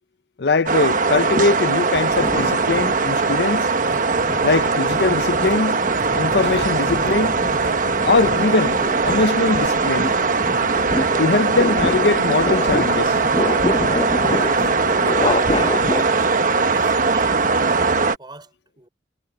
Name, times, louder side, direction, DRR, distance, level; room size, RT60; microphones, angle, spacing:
voice 1, 0.4-3.7 4.4-5.8 6.1-7.4 8.0-8.8 9.0-10.1 11.2-13.2, left 3 dB, 65° left, 0.6 m, -21 dB
sound 1, 0.7-18.2, right 4 dB, 50° right, 1.1 m, -20 dB
sound 2, 2.0-3.4 3.9-16.0, left 2 dB, 30° left, 0.7 m, -28 dB
Tap, 3.3-9.7, right 1 dB, 80° right, 7.5 m, -43 dB
voice 2, 14.4-15.3 15.6-16.3 16.6-18.9, right 2 dB, 25° right, 5.2 m, -40 dB
head